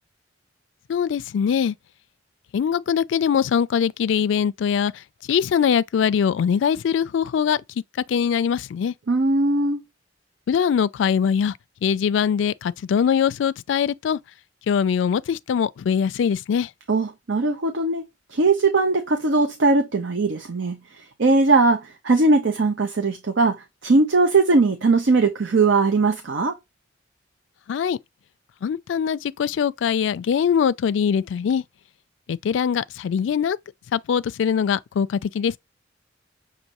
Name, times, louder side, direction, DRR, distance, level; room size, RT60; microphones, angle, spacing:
voice 1, 0.9-1.7 2.5-5.0 5.3-7.6 8.1-8.9 10.5-11.5 11.8-14.2 14.7-16.7 27.7-28.0 28.6-31.6 32.3-33.6 33.9-35.6, left 7 dB, 75° left, 0.3 m, -22 dB
voice 2, 9.1-9.8 16.9-18.0 18.3-26.6, right 3 dB, 75° right, 0.7 m, -20 dB
6.3 x 2.6 x 2.9 m
head